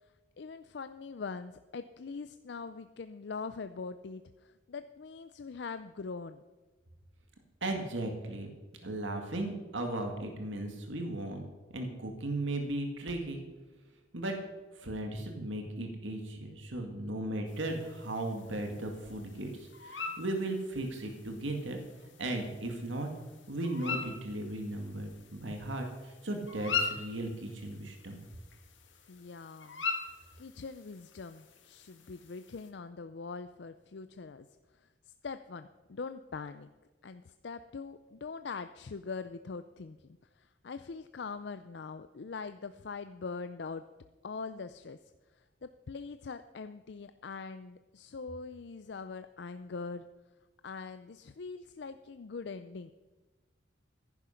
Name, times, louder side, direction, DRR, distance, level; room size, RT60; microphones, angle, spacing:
voice 1, 0.4-6.4 29.1-29.8 30.4-34.5 34.7-36.7 37.0-43.8 44.2-50.0 50.6-52.9, left 4 dB, 65° left, 11 dB, 0.5 m, -43 dB
voice 2, 7.6-8.5 8.8-11.5 11.7-13.4 14.1-14.4 14.7-21.8 22.2-23.1 23.5-28.2, right 1 dB, 85° right, 3 dB, 2.0 m, -36 dB
sound 1, 17.5-32.7, left 5 dB, 80° left, 1.9 m, -42 dB
15.0 x 11.0 x 5.8 m, 1.2 s
head